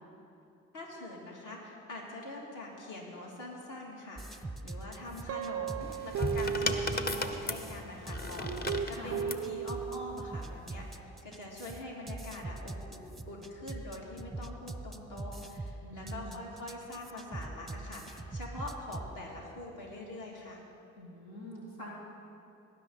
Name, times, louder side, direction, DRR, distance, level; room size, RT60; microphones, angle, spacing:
voice 1, 0.7-20.6, left 2 dB, 50° left, -2 dB, 2.6 m, -44 dB
sound 1, 4.2-19.1, right 2 dB, ahead, 0.8 m, -42 dB
Guitar, 5.3-7.7 8.4-10.4, right 7 dB, 40° right, 0.4 m, -36 dB
sound 2, 5.8-9.5 10.5-10.9, left 2 dB, 25° left, 1.1 m, -35 dB
voice 2, 8.8-9.2 15.8-16.4 21.0-21.9, equal, 80° left, -6 dB, 2.8 m, -46 dB
19.0 x 10.5 x 4.1 m, 2.8 s
hypercardioid pair, 50°, 38 cm